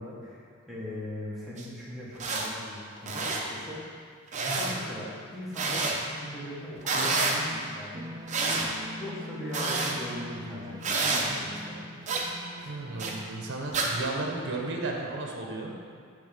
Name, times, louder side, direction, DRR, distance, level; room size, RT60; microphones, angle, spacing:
voice 1, 0.0-3.8 4.5-8.1 9.0-11.9 12.6-12.7, left 1 dB, ahead, -8 dB, 1.4 m, -40 dB
sound 1, 1.6-1.7 2.1-2.5 3.0-3.4 4.3-4.7 5.5-6.0 6.8-7.4 8.3-8.7 9.5-9.9 10.8-11.3 12.1-12.2 13.0-13.1 13.7-13.9, right 3 dB, 35° right, 0.7 m, -28 dB
sound 2, 7.9-14.7, equal, 20° right, 0.3 m, -43 dB
voice 2, 12.7-15.7, right 2 dB, 55° right, 0 dB, 1.0 m, -34 dB
7.8 x 3.5 x 5.1 m, 2.2 s
head